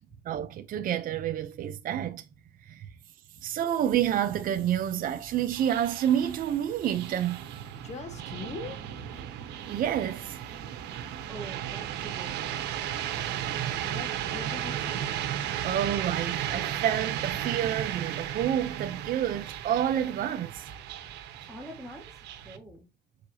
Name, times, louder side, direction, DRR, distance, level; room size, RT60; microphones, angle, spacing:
voice 1, 0.2-2.2 2.6-2.9 3.4-7.4 9.7-10.5 15.6-20.7, right 10 dB, 55° right, 0.8 m, -29 dB
sound 1, 3.6-22.6, right 10 dB, 85° right, 1.2 m, -35 dB
voice 2, 7.7-8.8 13.7-15.2, left 4 dB, 40° left, 1.8 m, -41 dB
voice 3, 11.3-12.7 21.5-22.1 22.4-22.8, right 1 dB, ahead, 1.9 m, -45 dB
6.7 x 4.9 x 2.9 m
cardioid pair, 110°, 17 cm